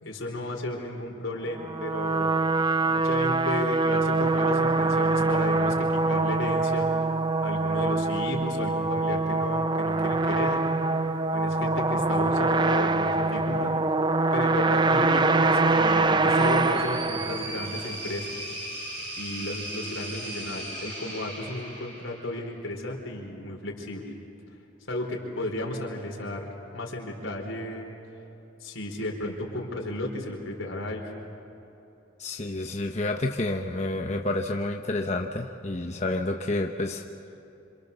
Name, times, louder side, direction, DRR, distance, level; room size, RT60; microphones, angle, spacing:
voice 1, 0.0-2.3 2.9-6.9 7.4-10.7 11.3-13.7 14.3-18.3 19.2-24.1 24.9-26.5 26.7-27.9 28.6-31.0, left 1 dB, 90° left, 1 dB, 4.5 m, -34 dB
sound 1, 1.6-17.9, right 3 dB, 20° right, 0.5 m, -24 dB
sound 2, 16.3-22.5, right 1 dB, 60° right, 7.2 m, -38 dB
voice 2, 32.2-37.0, left 2 dB, 35° left, 2 dB, 0.9 m, -29 dB
27.5 x 27.0 x 6.9 m, 2.9 s
head